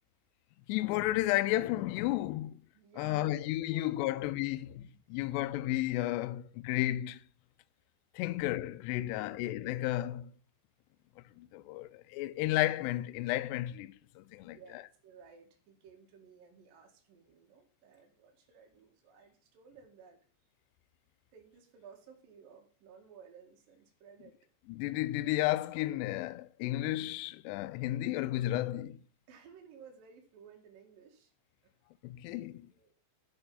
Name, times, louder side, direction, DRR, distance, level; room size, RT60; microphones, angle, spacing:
voice 1, 0.7-2.6 3.0-7.2 8.2-10.3 11.4-14.8 24.7-29.0 32.0-32.7, left 16 dB, 85° left, 2.4 m, -33 dB
voice 2, 2.7-3.5 3.7-4.7 5.4-5.5 9.1-9.4 14.4-20.2 21.3-24.4 28.5-28.7 29.3-31.3 31.6-31.8 32.7-32.9, right 6 dB, 55° right, 3.0 m, -57 dB
9.1 x 6.5 x 5.4 m
omnidirectional pair, 5.5 m